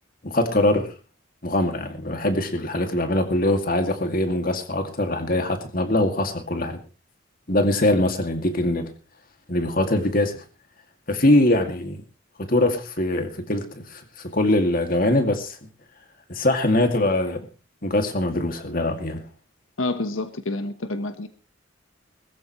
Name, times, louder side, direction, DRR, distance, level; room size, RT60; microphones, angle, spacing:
voice 1, 0.2-0.9 1.4-6.8 7.5-8.9 9.5-10.4 11.1-12.0 12.4-15.6 16.3-17.5 17.8-19.3, left 1 dB, 45° left, 2.3 m, -22 dB
voice 2, 19.8-21.3, left 2 dB, 90° left, 1.2 m, -28 dB
21.5 x 14.0 x 3.2 m
head